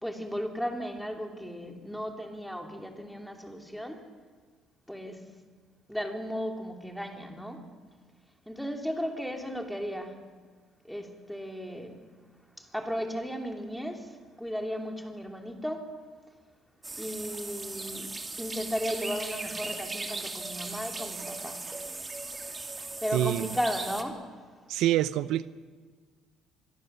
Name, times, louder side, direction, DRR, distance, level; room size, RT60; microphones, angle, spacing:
voice 1, 0.0-4.0 4.9-5.2 5.9-7.6 8.5-10.1 10.9-11.9 12.6-14.1 14.4-15.9 17.0-18.1 18.4-21.6 23.0-24.3, equal, ahead, 4 dB, 2.9 m, -35 dB
sound 1, 16.8-24.0, right 3 dB, 20° right, 2.2 m, -38 dB
voice 2, 23.1-23.5 24.7-25.5, right 13 dB, 75° right, 15 dB, 0.6 m, -26 dB
25.0 x 22.5 x 6.8 m, 1.5 s
cardioid pair, 125°, 0 cm